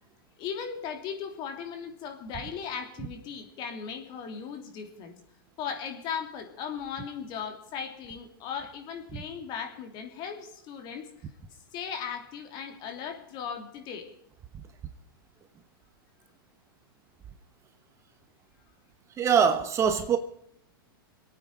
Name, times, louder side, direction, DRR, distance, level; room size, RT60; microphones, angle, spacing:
voice 1, 0.4-5.1 5.6-11.1 11.7-14.1, left 7 dB, 40° left, 3.2 m, -37 dB
voice 2, 19.2-20.2, right 7 dB, 25° right, 1.1 m, -23 dB
26.5 x 9.0 x 4.7 m
hypercardioid pair, 135°, 12 cm